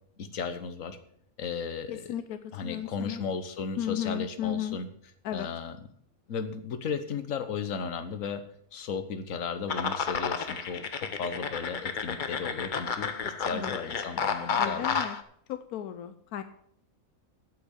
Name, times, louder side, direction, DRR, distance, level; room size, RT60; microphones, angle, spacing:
voice 1, 0.2-1.0 1.4-2.1 2.5-4.9 5.3-5.9 6.3-8.4 8.7-15.0, left 5 dB, 65° left, 9 dB, 1.4 m, -35 dB
voice 2, 1.9-3.2 3.8-4.8 5.2-5.5 13.5-13.7 14.6-15.1 15.5-16.4, left 11 dB, 85° left, 10 dB, 1.2 m, -34 dB
sound 1, 9.7-15.2, left 6 dB, 45° left, 0.7 m, -31 dB
8.5 x 8.4 x 7.0 m, 0.66 s
omnidirectional pair, 1.5 m